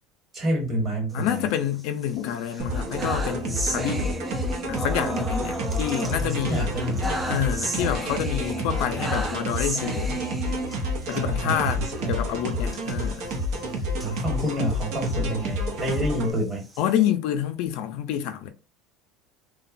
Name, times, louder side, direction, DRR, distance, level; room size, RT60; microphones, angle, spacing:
voice 1, 0.3-1.5 6.1-7.2 11.1-12.2 13.9-16.6, equal, 30° right, 1.2 m, -28 dB
voice 2, 1.1-4.2 4.7-6.7 7.3-10.2 11.1-11.8 12.1-13.3 16.8-18.5, left 10 dB, 70° left, 0.4 m, -28 dB
sound 1, 1.1-2.1 2.4-11.2 11.6-11.7 12.0-12.1 12.7-15.2 15.7-17.1, right 2 dB, 10° right, 0.4 m, -34 dB
sound 2, 2.6-16.3, left 1 dB, 65° right, 0.7 m, -29 dB
2.8 x 2.2 x 2.5 m
cardioid pair, 140°, 0 cm